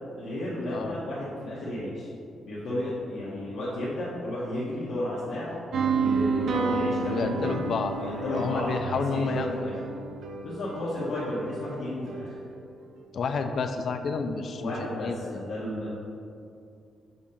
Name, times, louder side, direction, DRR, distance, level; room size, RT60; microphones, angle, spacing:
voice 1, 0.1-2.1 2.4-5.6 5.9-9.8 10.4-12.3 14.6-15.9, left 1 dB, 65° left, -9 dB, 1.1 m, -33 dB
sound 1, 5.7-12.6, right 4 dB, 55° right, 0.5 m, -31 dB
voice 2, 7.1-7.9 8.2-9.6 13.1-14.7 15.0-15.2, left 5 dB, 45° left, 7 dB, 0.4 m, -29 dB
7.1 x 2.9 x 5.4 m, 2.4 s
wide cardioid pair, 175°, 0 cm